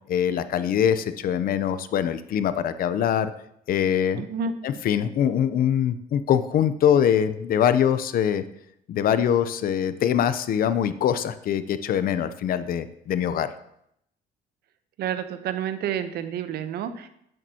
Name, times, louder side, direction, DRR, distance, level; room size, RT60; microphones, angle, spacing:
voice 1, 0.1-3.3 3.7-4.2 4.6-8.4 8.9-13.5, left 9 dB, 60° left, 12 dB, 0.7 m, -23 dB
voice 2, 4.2-4.5 15.0-17.1, right 8 dB, 70° right, 10 dB, 0.9 m, -29 dB
10.5 x 9.2 x 2.9 m, 0.74 s
cardioid pair, 110°, 17 cm